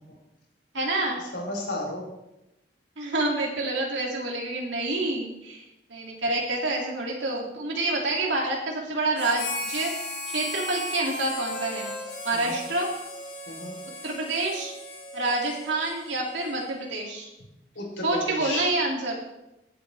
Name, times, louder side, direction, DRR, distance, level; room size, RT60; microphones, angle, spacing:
voice 1, 0.7-1.2 3.0-5.6 5.9-11.9 12.2-12.9 14.0-14.7 15.1-17.3 18.0-19.2, right 2 dB, 90° right, -1 dB, 2.4 m, -28 dB
voice 2, 1.3-2.0 12.3-12.6 13.5-13.8 17.8-18.7, left 1 dB, 90° left, -1 dB, 3.7 m, -33 dB
Harmonica, 9.1-16.9, left 1 dB, 75° left, 3.4 m, -36 dB
19.5 x 8.4 x 3.3 m, 0.92 s
head